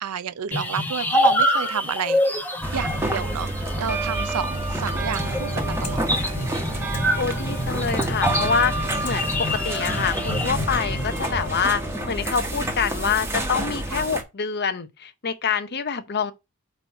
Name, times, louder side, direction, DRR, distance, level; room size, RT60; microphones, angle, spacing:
voice 1, 0.0-2.4 2.7-6.4 13.9-14.0, right 7 dB, 80° right, 0.5 m, -31 dB
sound 1, 0.5-10.5, equal, 10° left, 1.0 m, -27 dB
sound 2, 2.6-14.2, right 1 dB, 10° right, 1.2 m, -28 dB
sound 3, 4.4-12.7, left 1 dB, 75° left, 2.6 m, -33 dB
voice 2, 7.2-16.3, left 6 dB, 50° left, 0.8 m, -26 dB
8.1 x 3.2 x 5.1 m
head